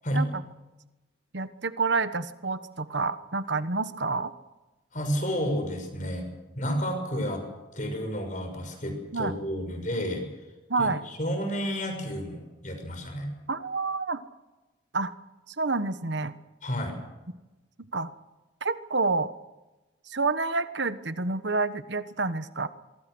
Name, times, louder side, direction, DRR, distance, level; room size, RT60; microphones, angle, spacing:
voice 1, 1.3-4.3 9.1-9.3 10.7-11.0 13.5-14.2 14.9-15.1 15.5-16.3 17.9-18.1 18.6-19.3 20.1-22.7, right 3 dB, 65° right, 12 dB, 1.3 m, -28 dB
voice 2, 4.9-6.3 6.5-7.5 7.7-10.2 10.8-13.3 16.6-17.0, equal, 40° left, 5 dB, 6.1 m, -31 dB
24.5 x 23.5 x 6.3 m, 1.1 s
head